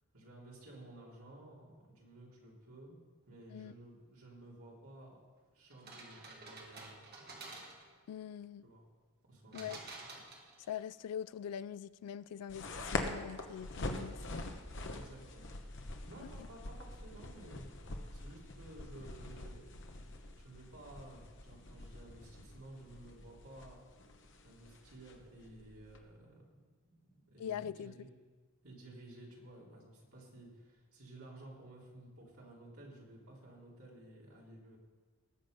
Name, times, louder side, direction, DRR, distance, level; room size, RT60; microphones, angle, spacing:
voice 1, 0.1-3.0 3.3-5.2 5.5-7.1 8.6-8.8 9.3-9.8 14.9-15.6 16.1-23.8 24.4-26.4 26.9-28.1 28.6-34.8, right 1 dB, 70° right, -4 dB, 3.6 m, -54 dB
sound 1, 5.7-8.0 9.5-10.8, right 3 dB, 45° right, 1.9 m, -50 dB
voice 2, 8.1-8.6 9.5-9.8 10.7-14.2 16.2-16.3 27.4-27.9, left 9 dB, 90° left, 16 dB, 0.3 m, -43 dB
sound 2, 12.5-26.0, left 2 dB, 55° left, 1.1 m, -44 dB
19.0 x 7.5 x 5.3 m, 1.4 s
head